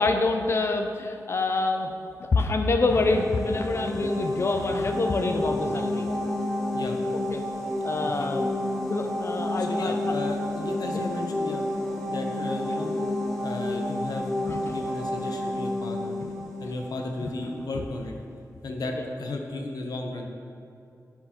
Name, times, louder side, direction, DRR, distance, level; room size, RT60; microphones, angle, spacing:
voice 1, 0.0-1.9 2.2-6.1 7.3-7.4 7.8-8.5 8.9-10.1 14.5-14.7 16.2-16.3, left 3 dB, 40° left, 5 dB, 0.3 m, -26 dB
sound 1, 2.8-17.5, left 1 dB, 5° left, 0.9 m, -30 dB
voice 2, 9.6-11.7 12.1-12.9 13.4-16.1 16.6-18.1 18.6-20.3, left 2 dB, 85° left, 3 dB, 0.6 m, -34 dB
7.3 x 4.5 x 2.9 m, 2.6 s
wide cardioid pair, 115°, 7 cm